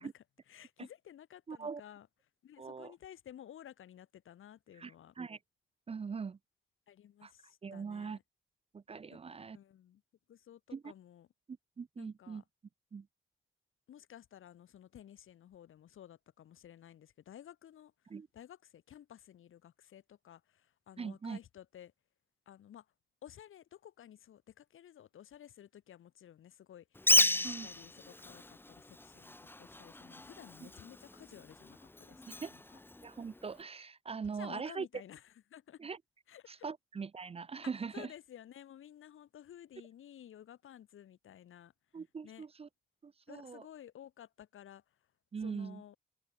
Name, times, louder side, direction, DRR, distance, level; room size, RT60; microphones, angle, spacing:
voice 1, 0.0-2.1 2.4-5.1 6.9-8.2 9.1-9.2 9.5-10.0 10.3-11.3 12.0-12.4 13.9-17.9 18.3-21.9 22.5-22.9 23.2-32.6 34.3-35.2 35.5-35.8 36.3-36.4 37.9-41.7 42.2-42.5 43.3-44.8 45.4-46.0, left 10 dB, 85° left, 2.1 m, -54 dB
voice 2, 1.5-1.8 2.6-2.9 4.8-5.4 5.9-6.4 7.2-7.3 7.6-8.2 8.7-9.6 10.7-10.9 11.5-12.4 12.9-13.1 18.1-18.3 21.0-21.4 27.4-27.7 30.6-30.7 32.4-32.5 33.0-34.9 35.8-36.0 36.5-38.1 41.9-42.7 43.0-43.7 45.3-45.8, right 5 dB, 30° right, 0.4 m, -42 dB
Bird, 27.0-33.6, left 2 dB, 10° left, 0.8 m, -34 dB
open air
cardioid pair, 80°, 20 cm